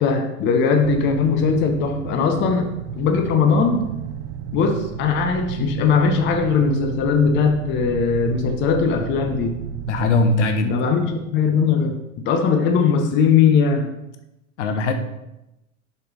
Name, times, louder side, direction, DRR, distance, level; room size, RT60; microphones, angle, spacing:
voice 1, 0.0-2.7 3.0-3.9 4.5-9.6 10.6-12.0 12.2-13.9, left 5 dB, 25° left, 6 dB, 0.9 m, -19 dB
sound 1, 0.8-10.5, right 10 dB, 55° right, 0.6 m, -33 dB
voice 2, 9.9-10.8 14.6-14.9, left 2 dB, 60° left, 7 dB, 1.0 m, -20 dB
7.1 x 5.8 x 4.1 m, 0.92 s
figure-of-eight pair, 95°, 41 cm